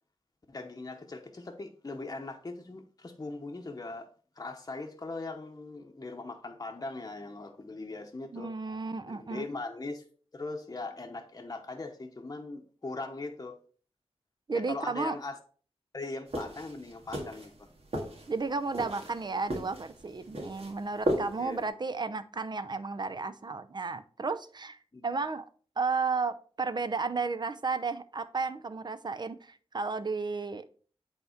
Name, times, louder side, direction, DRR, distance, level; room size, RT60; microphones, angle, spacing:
voice 1, 0.5-4.1 4.4-8.5 9.1-10.0 10.3-13.6 14.5-15.4 15.9-17.7 21.4-21.6 24.9-25.2, left 3 dB, 35° left, 0.9 m, -40 dB
voice 2, 8.3-9.5 14.5-15.2 18.3-25.5 25.8-30.7, right 4 dB, 45° right, 0.6 m, -33 dB
sound 1, 16.3-21.7, right 1 dB, 70° right, 1.8 m, -36 dB
8.0 x 3.6 x 4.4 m
wide cardioid pair, 70°, 11 cm